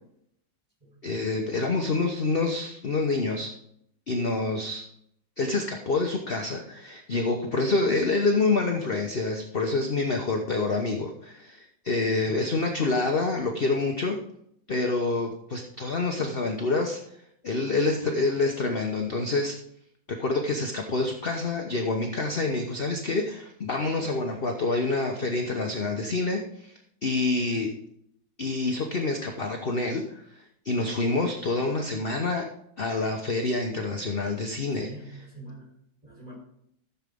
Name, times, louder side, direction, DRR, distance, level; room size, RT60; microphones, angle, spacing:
voice 1, 1.0-3.5 4.1-4.9 5.4-14.2 14.7-17.0 17.4-19.5 20.1-26.7 27.0-27.7 28.4-32.5 32.8-34.9, left 3 dB, 40° left, 2 dB, 1.0 m, -27 dB
voice 2, 34.6-35.7 36.0-36.4, right 1 dB, 20° right, -2 dB, 4.1 m, -45 dB
14.5 x 7.2 x 3.7 m, 0.72 s
omnidirectional pair, 1.9 m